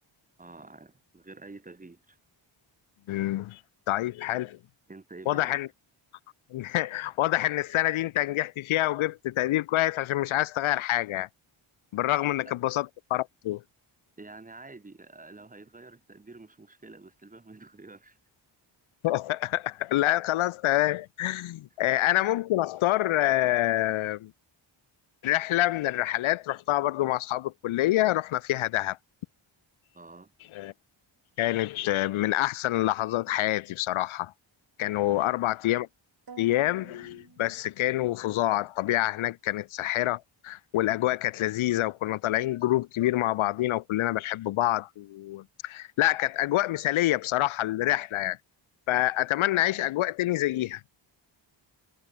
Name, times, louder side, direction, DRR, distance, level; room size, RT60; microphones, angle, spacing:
voice 1, 0.4-2.2 4.9-5.6 12.1-12.3 14.2-18.2 29.9-30.3 35.1-35.4, right 3 dB, 15° right, 1.3 m, -48 dB
voice 2, 3.1-3.6 3.9-4.6 5.3-5.7 6.5-11.3 11.9-13.6 19.0-24.3 25.2-29.0 30.5-30.7 31.4-34.3 34.8-35.9 36.4-48.4 48.9-50.8, left 15 dB, 80° left, 0.6 m, -27 dB
sound 1, 36.3-38.2, right 6 dB, 45° right, 7.8 m, -51 dB
wide cardioid pair, 135°, 48 cm